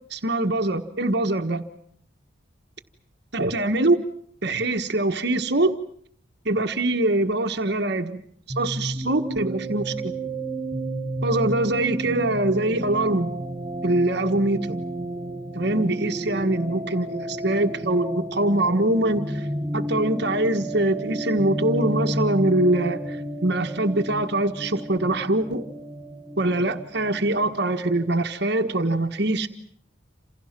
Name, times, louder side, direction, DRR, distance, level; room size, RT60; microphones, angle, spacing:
voice 1, 0.1-1.6 3.3-4.0 4.4-5.7 6.4-8.2 8.6-10.1 11.2-13.3 13.8-14.8 15.5-19.5 19.7-23.2 23.4-25.7 26.4-29.5, right 2 dB, 55° right, 1.4 m, -23 dB
sound 1, 8.5-28.0, right 1 dB, 20° right, 5.4 m, -32 dB
28.5 x 28.0 x 6.0 m
head